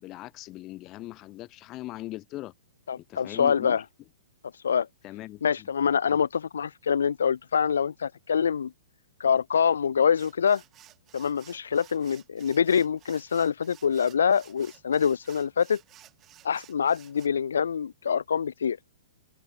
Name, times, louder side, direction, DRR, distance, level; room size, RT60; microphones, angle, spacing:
voice 1, 0.0-2.5 3.0-3.8 5.0-5.7 6.0-6.2, left 17 dB, 30° left, 0.7 m, -40 dB
voice 2, 2.9-3.8 4.6-4.9 5.4-8.7 9.2-10.6 11.1-15.8 16.4-18.8, left 7 dB, 65° left, 0.3 m, -25 dB
sound 1, 10.2-17.3, right 13 dB, 25° right, 2.6 m, -54 dB
figure-of-eight pair, 115°, 0 cm